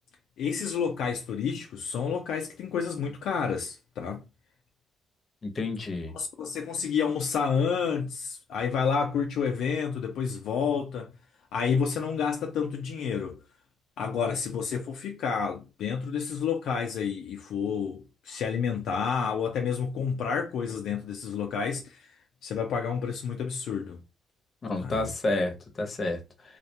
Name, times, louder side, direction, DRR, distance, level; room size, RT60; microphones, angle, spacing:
voice 1, 0.4-4.2 6.1-11.1 11.5-13.4 14.0-22.1 22.4-24.0 24.8-25.1, left 6 dB, 75° left, 0.4 m, -29 dB
voice 2, 5.4-6.1 24.6-26.2, left 2 dB, 40° left, 0.7 m, -30 dB
2.3 x 2.1 x 2.7 m
cardioid pair, 90°, 0 cm